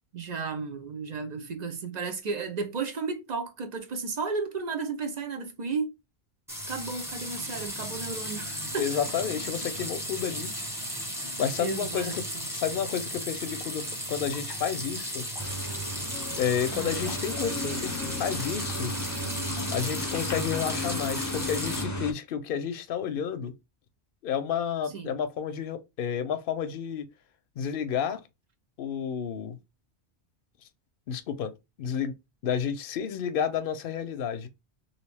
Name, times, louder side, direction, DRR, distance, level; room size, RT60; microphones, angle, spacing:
voice 1, 0.1-5.9 6.7-8.9 11.6-12.5 16.7-17.0 24.9-25.2, right 4 dB, 50° right, 0.6 m, -34 dB
sound 1, 6.5-21.8, equal, 5° right, 0.9 m, -35 dB
voice 2, 8.8-10.5 11.4-12.2 12.5-15.3 16.0-16.1 16.4-18.9 19.7-23.5 24.2-27.1 27.6-28.2 28.8-29.6 31.1-31.5 31.8-32.1 32.4-34.5, left 8 dB, 65° left, 0.7 m, -31 dB
sound 2, 15.4-22.1, left 1 dB, 20° left, 0.5 m, -34 dB
3.1 x 2.6 x 3.3 m
omnidirectional pair, 1.1 m